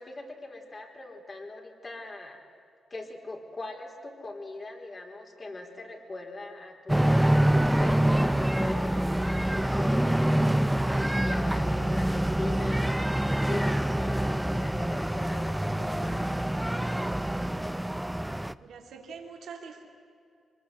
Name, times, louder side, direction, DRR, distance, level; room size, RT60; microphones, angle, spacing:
voice 1, 0.0-2.4 2.9-10.4 11.2-13.0 13.4-16.4, left 2 dB, 40° left, 1 dB, 4.3 m, -41 dB
sound 1, 6.9-18.5, right 1 dB, 10° right, 0.7 m, -26 dB
voice 2, 18.6-19.8, right 5 dB, 75° right, 3 dB, 2.7 m, -44 dB
24.0 x 20.0 x 8.0 m, 2.4 s
supercardioid pair, 60°, 0 cm